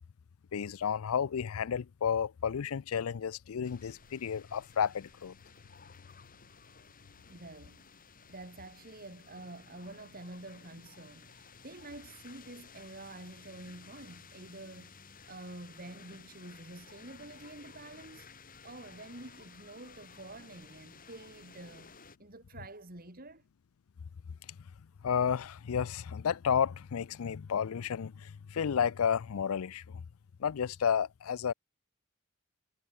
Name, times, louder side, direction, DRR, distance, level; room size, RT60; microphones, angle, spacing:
voice 1, 0.5-5.3 25.0-30.0 30.4-31.5, left 7 dB, 75° left, 0.4 m, -32 dB
sound 1, 3.6-22.2, left 5 dB, 40° left, 6.6 m, -55 dB
voice 2, 7.3-7.8 8.3-15.0 15.3-18.3 18.6-23.4, right 2 dB, 45° right, 4.1 m, -48 dB
head